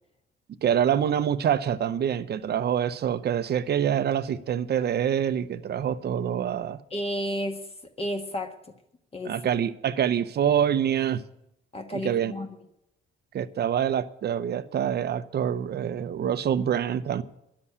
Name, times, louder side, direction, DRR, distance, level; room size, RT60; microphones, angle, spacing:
voice 1, 0.6-6.8 9.2-11.2 11.9-12.3 13.3-17.2, right 9 dB, 55° right, 0.7 m, -26 dB
voice 2, 6.9-7.6 8.0-8.5 9.1-9.3 11.7-12.5, equal, 30° left, 1.4 m, -31 dB
11.0 x 7.4 x 9.7 m
cardioid pair, 90°, 20 cm